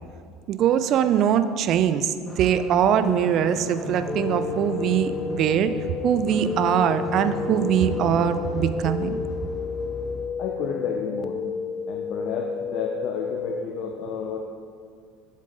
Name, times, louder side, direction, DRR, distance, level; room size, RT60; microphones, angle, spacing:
voice 1, 0.5-5.7 6.0-9.2, right 9 dB, 55° right, 11 dB, 0.5 m, -22 dB
sound 1, 2.3-10.3, left 2 dB, 10° left, 1.1 m, -35 dB
sound 2, 4.1-13.6, left 5 dB, 30° left, 0.4 m, -31 dB
voice 2, 10.4-11.4 11.9-14.4, left 6 dB, 55° left, 1 dB, 0.7 m, -31 dB
7.5 x 7.3 x 3.9 m, 2.2 s
hypercardioid pair, 80°, 0 cm